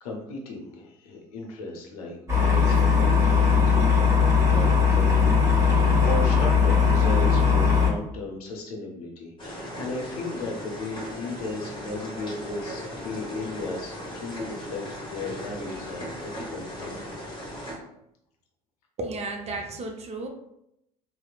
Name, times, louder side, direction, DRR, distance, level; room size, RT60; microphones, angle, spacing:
voice 1, 0.0-14.8 15.1-17.1 17.5-17.8, left 2 dB, 80° left, 1 dB, 0.6 m, -36 dB
sound 1, 2.3-7.9, left 6 dB, 15° right, 1.2 m, -19 dB
sound 2, 9.4-17.8, equal, 25° left, 1.0 m, -37 dB
voice 2, 19.0-20.3, right 2 dB, 35° right, 3 dB, 0.5 m, -33 dB
2.8 x 2.0 x 2.3 m, 0.80 s
hypercardioid pair, 65°, 19 cm